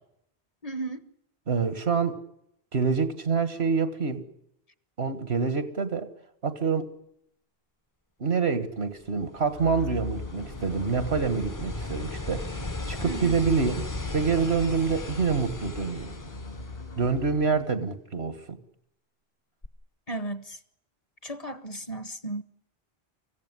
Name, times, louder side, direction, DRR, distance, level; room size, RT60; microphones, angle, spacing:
voice 1, 0.6-1.0 13.1-13.3 20.1-20.6 21.2-22.4, right 2 dB, 40° left, 1.2 m, -34 dB
voice 2, 1.5-2.2 2.7-4.2 5.0-6.1 6.4-6.9 8.2-12.5 12.9-13.8 14.1-16.1 17.0-18.6, right 5 dB, 85° right, 1.9 m, -26 dB
sound 1, 9.0-17.5 19.6-19.7, left 2 dB, 20° left, 0.8 m, -37 dB
sound 2, 9.5-17.8, left 2 dB, 65° left, 4.1 m, -40 dB
24.5 x 15.5 x 9.7 m
omnidirectional pair, 1.0 m